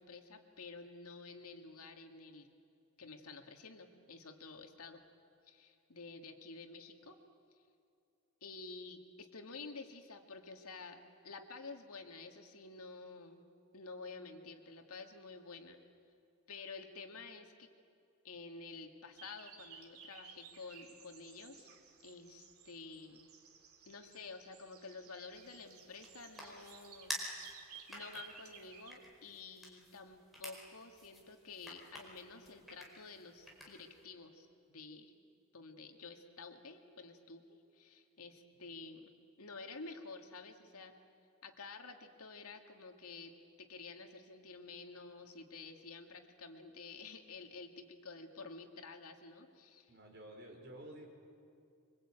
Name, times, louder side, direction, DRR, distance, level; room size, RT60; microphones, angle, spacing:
voice 1, 0.0-2.5 3.0-5.0 5.4-7.2 8.4-13.4 13.7-15.8 16.5-17.7 18.2-21.7 22.0-23.3 23.9-27.2 27.9-35.1 35.5-40.9 41.4-49.9, left 4 dB, 80° left, 5 dB, 2.2 m, -51 dB
sound 1, 19.1-28.9, right 7 dB, 75° right, 2.5 m, -57 dB
sound 2, 25.3-34.0, equal, ahead, 4.8 m, -50 dB
voice 2, 49.9-51.1, right 1 dB, 50° right, 1 dB, 4.7 m, -51 dB
26.0 x 24.0 x 8.9 m, 2.5 s
head